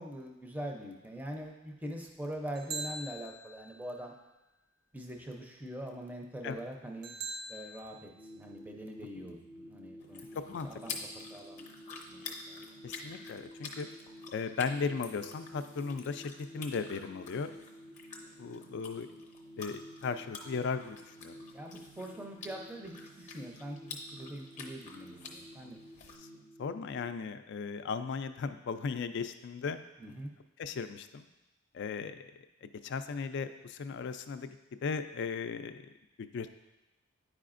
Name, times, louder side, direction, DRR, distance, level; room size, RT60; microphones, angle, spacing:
voice 1, 0.0-4.1 4.9-7.1 7.5-11.7 12.1-12.6 21.5-26.1 30.0-30.3, right 1 dB, 10° right, 2 dB, 0.5 m, -43 dB
sound 1, 2.6-3.9 7.0-7.8, right 3 dB, 60° right, 0.7 m, -41 dB
sound 2, 8.1-27.1, equal, 80° right, 2.2 m, -52 dB
sound 3, 10.0-26.2, left 4 dB, 35° left, 0.7 m, -48 dB
voice 2, 12.8-13.9 14.3-17.5 18.4-19.1 19.6-21.4 26.2-26.3 26.6-29.8 30.6-31.3 31.7-32.2 32.6-34.6 34.8-35.9 36.2-36.6, left 5 dB, 55° left, 10 dB, 0.3 m, -36 dB
9.2 x 4.9 x 2.5 m, 0.99 s
head